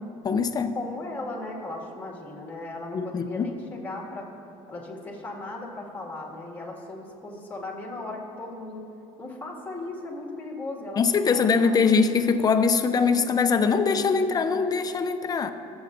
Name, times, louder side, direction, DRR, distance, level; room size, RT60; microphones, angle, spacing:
voice 1, 0.2-0.8 2.9-3.5 11.0-15.5, left 5 dB, 30° left, 8 dB, 0.6 m, -22 dB
voice 2, 0.7-4.3 4.7-8.8 9.2-11.9, left 2 dB, 15° left, -1 dB, 2.0 m, -37 dB
23.5 x 7.9 x 2.6 m, 2.8 s
cardioid pair, 125°, 13 cm